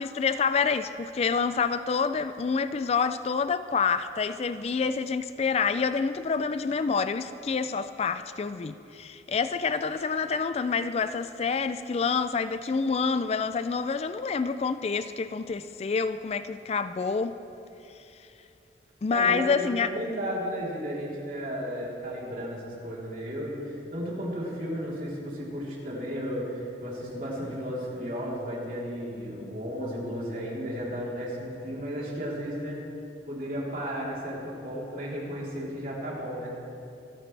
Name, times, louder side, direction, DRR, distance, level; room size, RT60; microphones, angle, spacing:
voice 1, 0.0-17.4 19.0-19.9 29.4-29.5, left 5 dB, 35° left, 12 dB, 0.3 m, -27 dB
voice 2, 19.1-32.8 33.2-36.5, equal, 50° right, -5 dB, 3.6 m, -34 dB
26.5 x 10.0 x 3.3 m, 2.7 s
head